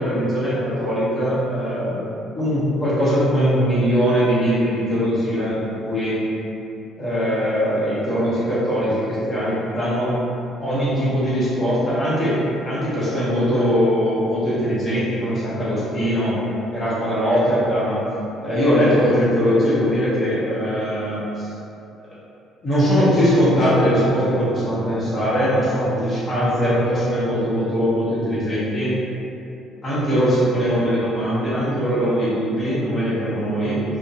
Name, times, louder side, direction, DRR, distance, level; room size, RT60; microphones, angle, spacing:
voice 1, 0.0-2.0 2.3-6.2 7.0-10.2 10.6-16.4 16.7-18.0 18.4-21.5 22.6-28.9 29.8-33.8, equal, 35° left, -10 dB, 1.1 m, -21 dB
2.5 x 2.5 x 2.6 m, 2.7 s
figure-of-eight pair, 50°, 0 cm